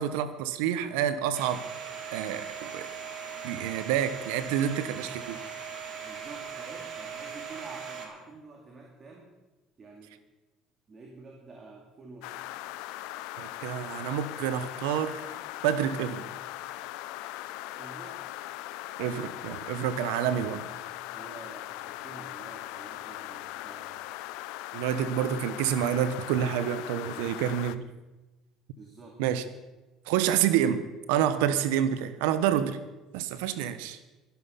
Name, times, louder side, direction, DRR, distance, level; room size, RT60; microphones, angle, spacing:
voice 1, 0.0-1.7 2.1-2.9 3.4-5.4 13.4-15.2 15.6-16.2 19.0-20.7 24.7-27.9 29.2-29.4 30.1-32.8 33.1-34.0, right 10 dB, 85° right, 12 dB, 1.0 m, -28 dB
Domestic sounds home sounds, 1.3-8.1, right 6 dB, 55° right, 2.9 m, -39 dB
voice 2, 6.0-9.3 9.8-10.2 10.9-12.4 17.8-18.2 21.1-24.0 28.8-29.2, right 3 dB, 35° right, 0 dB, 2.6 m, -48 dB
sound 1, 12.2-27.8, left 16 dB, 80° left, 0.5 m, -40 dB
12.5 x 11.5 x 5.7 m, 1.1 s
supercardioid pair, 90°, 0 cm